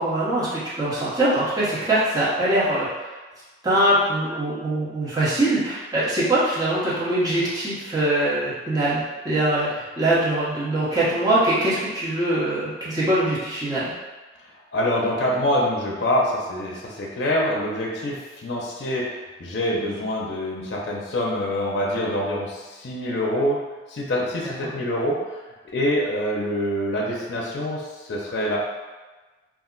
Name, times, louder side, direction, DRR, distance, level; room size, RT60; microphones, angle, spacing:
voice 1, 0.0-2.9 3.6-9.7 10.0-13.9 24.6-24.7, right 1 dB, 20° right, -10 dB, 0.9 m, -22 dB
voice 2, 14.7-23.6 23.9-28.6, left 1 dB, 60° left, -3 dB, 0.5 m, -25 dB
2.4 x 2.1 x 3.7 m, 1.2 s
head